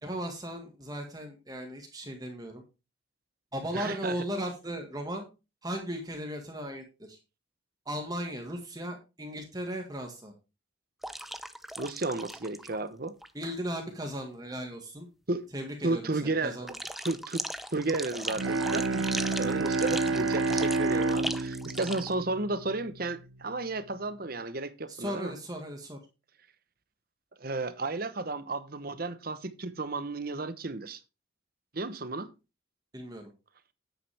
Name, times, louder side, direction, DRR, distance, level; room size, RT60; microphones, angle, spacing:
voice 1, 0.0-2.6 3.5-5.3 5.6-7.2 7.9-10.3 13.3-15.1 15.5-16.8 24.9-26.0 32.9-33.3, equal, 20° right, 1.7 m, -37 dB
voice 2, 3.7-4.2 11.8-13.1 15.3-15.5 15.8-16.6 17.0-17.4 17.7-25.3 27.4-31.0 31.7-32.3, right 2 dB, 45° right, 1.0 m, -33 dB
sound 1, 11.0-12.8 13.1-13.3 16.7-22.1, equal, ahead, 0.6 m, -38 dB
Bowed string instrument, 18.3-23.2, right 3 dB, 80° right, 0.8 m, -29 dB
10.0 x 8.5 x 3.5 m
head